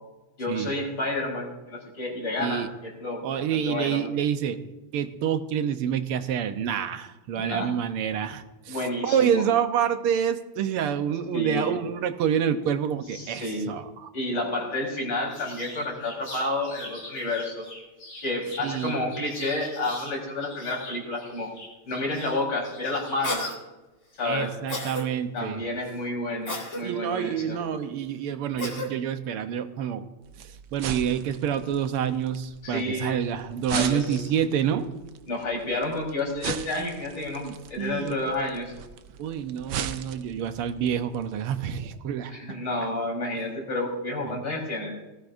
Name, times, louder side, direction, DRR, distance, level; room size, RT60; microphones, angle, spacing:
voice 1, 0.4-4.0 7.4-7.7 8.7-9.4 11.3-11.8 13.1-13.6 14.1-17.7 18.2-21.5 21.8-23.5 24.1-24.5 25.3-27.6 32.6-33.2 33.7-34.2 35.3-38.7 42.3-44.9, left 2 dB, 50° left, -1 dB, 4.7 m, -30 dB
voice 2, 3.2-14.1 18.6-19.0 24.3-25.6 26.8-30.1 30.4-34.9 37.4-38.2 39.2-42.6 44.2-44.4, right 8 dB, 90° right, 8 dB, 1.8 m, -28 dB
sound 1, 15.3-20.1 20.4-23.3, left 1 dB, 90° left, 6.7 m, -43 dB
Cough, 23.2-23.6 24.7-25.0 26.5-26.8 28.6-28.9, left 1 dB, 35° left, 2.4 m, -31 dB
sound 2, 30.2-42.0, right 8 dB, 70° right, 1.4 m, -39 dB
19.5 x 16.0 x 2.6 m, 1.1 s
omnidirectional pair, 2.4 m